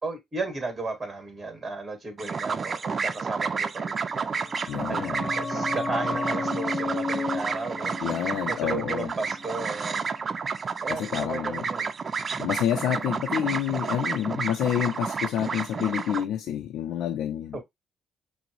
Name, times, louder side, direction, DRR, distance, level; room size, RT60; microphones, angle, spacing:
voice 1, 0.0-4.3 4.9-7.9 8.3-10.1 10.8-11.9 17.5-17.6, right 3 dB, 25° right, 2.1 m, -34 dB
sound 1, 2.2-16.2, right 5 dB, 40° right, 0.3 m, -31 dB
sound 2, 4.3-9.8 10.0-10.1, left 4 dB, 15° left, 0.8 m, -34 dB
voice 2, 4.7-5.3 8.0-9.1 10.9-11.7 12.4-17.6, left 10 dB, 85° left, 0.4 m, -28 dB
6.0 x 2.1 x 3.1 m
cardioid pair, 90°, 0 cm